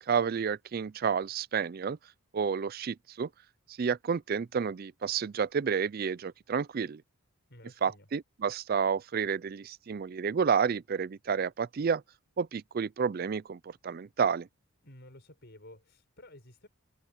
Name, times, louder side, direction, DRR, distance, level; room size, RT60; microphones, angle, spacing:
voice 1, 0.1-2.0 2.3-3.3 3.8-7.0 7.8-12.0 12.4-14.5, right 6 dB, 45° right, 0.4 m, -30 dB
voice 2, 7.5-8.1 14.8-16.7, left 1 dB, 50° left, 5.8 m, -52 dB
head